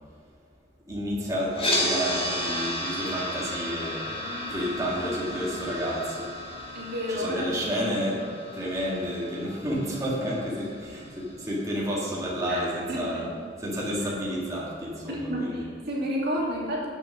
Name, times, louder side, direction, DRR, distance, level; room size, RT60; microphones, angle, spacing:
voice 1, 0.9-4.2 4.5-6.3 7.1-8.2 8.5-13.3 13.6-15.6, equal, 20° right, -6 dB, 1.8 m, -30 dB
sound 1, 1.5-11.6, left 1 dB, 30° left, 1.8 m, -33 dB
voice 2, 4.2-5.5 6.7-8.3 12.5-13.3 15.1-16.9, equal, 60° right, -4 dB, 2.2 m, -32 dB
8.5 x 6.5 x 6.2 m, 2.2 s
head